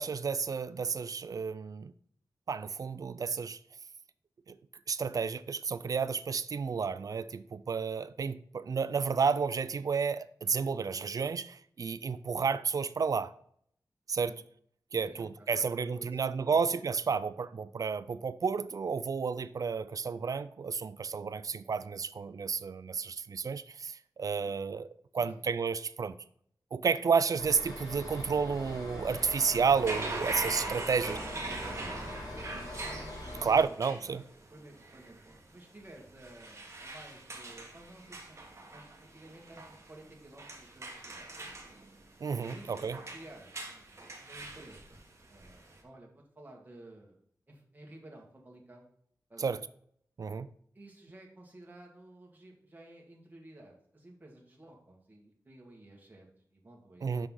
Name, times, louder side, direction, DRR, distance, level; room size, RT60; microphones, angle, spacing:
voice 1, 0.0-1.9 2.5-3.6 4.5-4.6 4.9-13.3 14.1-14.3 14.9-24.9 25.1-26.2 26.7-31.2 33.4-34.2 42.2-43.0 49.4-49.6 50.2-50.5 57.0-57.3, right 5 dB, 60° right, 0.4 m, -31 dB
voice 2, 15.0-16.7 25.1-25.5 30.9-34.2 34.5-38.4 38.7-41.3 42.4-47.2 47.5-48.9 49.3-49.6 50.7-57.3, right 1 dB, 25° right, 1.7 m, -53 dB
sound 1, 27.4-33.6, left 1 dB, 80° left, 3.3 m, -43 dB
sound 2, 29.1-45.8, right 2 dB, 40° right, 1.4 m, -42 dB
6.4 x 6.1 x 3.8 m
wide cardioid pair, 105°, 7 cm